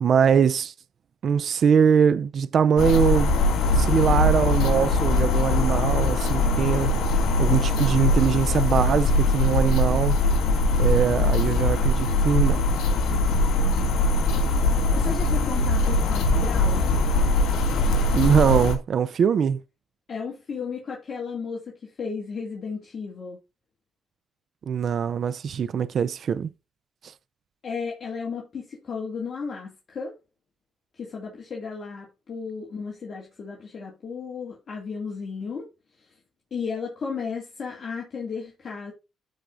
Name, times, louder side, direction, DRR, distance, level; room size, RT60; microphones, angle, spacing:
voice 1, 0.0-0.7 1.2-3.3 3.8-7.1 7.4-10.2 10.8-12.6 18.1-19.6 24.7-26.5, right 7 dB, 55° right, 0.5 m, -22 dB
sound 1, 2.8-18.7, left 2 dB, 85° left, 2.3 m, -21 dB
voice 2, 13.6-13.9 14.9-17.2 20.1-23.4 27.6-30.2 31.0-35.7 36.5-38.9, left 5 dB, 50° left, 2.4 m, -34 dB
14.0 x 4.8 x 2.6 m
cardioid pair, 90°, 0 cm